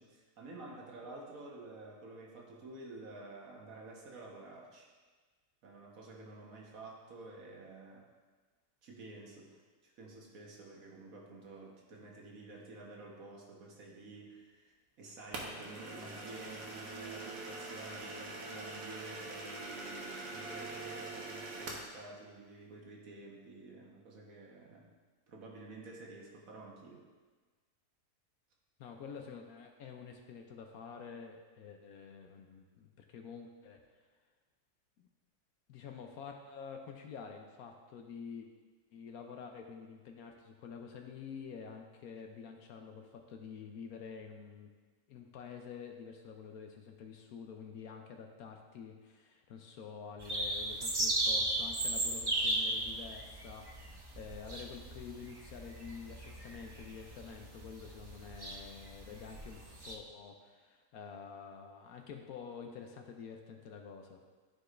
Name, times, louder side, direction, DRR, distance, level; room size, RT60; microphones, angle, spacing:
voice 1, 0.0-4.9 5.6-8.1 8.8-24.9 25.3-27.0, right 2 dB, 60° right, -2 dB, 1.6 m, -50 dB
sound 1, 15.3-21.9, right 2 dB, 85° right, 1.6 m, -44 dB
voice 2, 28.8-33.8 35.0-35.1 35.7-38.5 38.9-44.7 45.1-64.2, left 6 dB, 75° left, 3 dB, 1.1 m, -48 dB
sound 2, 50.2-59.9, right 1 dB, 35° right, 0.4 m, -36 dB
12.5 x 4.8 x 2.5 m, 1.4 s
omnidirectional pair, 1.7 m